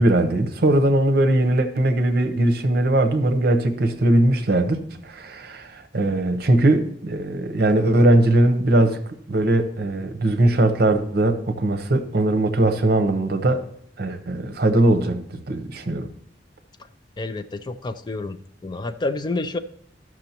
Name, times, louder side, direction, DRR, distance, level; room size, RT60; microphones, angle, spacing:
voice 1, 0.0-4.8 5.0-9.0 9.3-13.6 14.0-16.1, right 1 dB, 60° right, 8 dB, 0.8 m, -20 dB
voice 2, 17.2-18.4 18.6-19.6, left 2 dB, 25° left, 10 dB, 0.3 m, -28 dB
13.5 x 6.1 x 2.9 m, 0.68 s
head